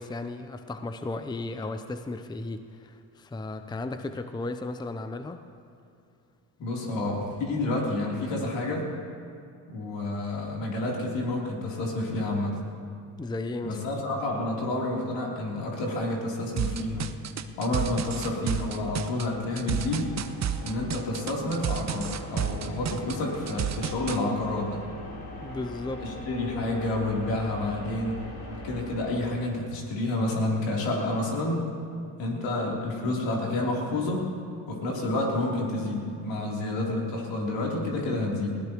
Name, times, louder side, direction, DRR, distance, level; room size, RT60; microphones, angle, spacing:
voice 1, 0.0-5.4 13.2-13.8 25.4-26.1, left 2 dB, 10° left, 9 dB, 0.7 m, -35 dB
voice 2, 6.6-8.9 9.7-12.6 13.6-17.1 17.6-20.1 20.6-24.9 26.0-28.2 28.6-31.7 32.2-34.3 34.7-38.6, left 2 dB, 70° left, -2 dB, 3.6 m, -29 dB
sound 1, 16.6-24.2, right 8 dB, 35° right, 0.8 m, -31 dB
sound 2, 17.3-30.1, left 1 dB, 45° left, 3.6 m, -42 dB
20.5 x 16.5 x 3.1 m, 2.5 s
hypercardioid pair, 65°, 46 cm